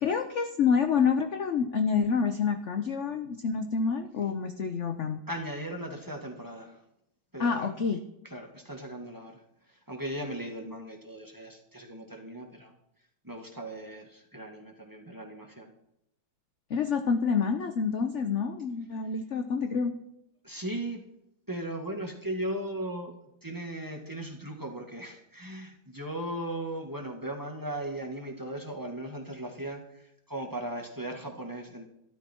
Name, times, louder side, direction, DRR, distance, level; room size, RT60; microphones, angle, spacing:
voice 1, 0.0-5.2 7.4-8.0 16.7-19.9, left 6 dB, 60° left, 8 dB, 0.8 m, -27 dB
voice 2, 5.3-6.8 7.3-7.7 8.2-9.4 9.9-12.7 13.2-15.7 20.4-21.0 21.5-23.1 23.4-31.9, right 1 dB, 10° right, 2 dB, 1.7 m, -37 dB
13.0 x 13.0 x 4.5 m, 0.81 s
omnidirectional pair, 2.3 m